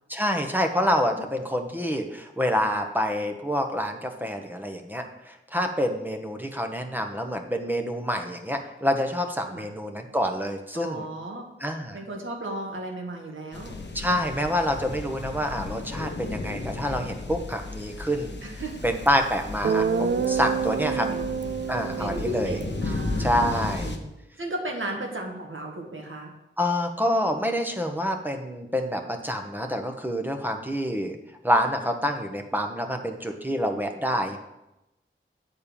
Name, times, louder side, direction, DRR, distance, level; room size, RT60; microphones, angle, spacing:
voice 1, 0.1-11.1 11.6-12.0 13.9-18.4 18.8-21.1 21.7-22.6 23.2-23.9 26.6-31.2 31.4-34.4, equal, 10° right, 4 dB, 1.0 m, -27 dB
voice 2, 10.7-11.4 11.9-13.7 18.4-18.7 20.9-21.2 22.0-24.0 24.4-26.3, right 1 dB, 75° right, 1 dB, 1.7 m, -35 dB
sound 1, 13.5-24.0, left 3 dB, 60° left, 1.0 m, -35 dB
Guitar, 19.1-19.2 19.6-23.7, right 6 dB, 60° right, 0.5 m, -28 dB
8.6 x 4.3 x 6.9 m, 0.92 s
wide cardioid pair, 60°, 21 cm